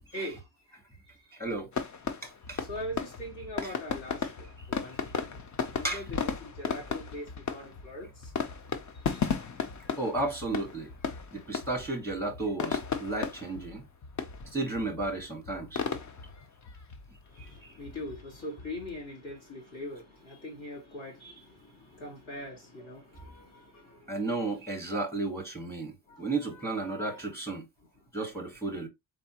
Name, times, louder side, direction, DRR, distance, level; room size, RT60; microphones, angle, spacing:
voice 1, 0.1-0.4 2.6-4.3 4.7-5.4 5.8-7.2 7.5-8.3 9.0-9.2 17.3-24.0 26.1-27.2, left 1 dB, 70° left, 2.7 m, -42 dB
voice 2, 1.3-1.7 2.2-2.6 3.6-3.7 4.6-4.7 5.8-6.0 10.0-10.9 11.3-13.8 14.5-15.8 17.6-17.7 24.1-27.7 28.1-28.9, right 2 dB, 5° left, 1.1 m, -33 dB
sound 1, 1.7-19.3, left 6 dB, 40° left, 0.6 m, -36 dB
4.0 x 3.5 x 2.8 m
wide cardioid pair, 165°, 49 cm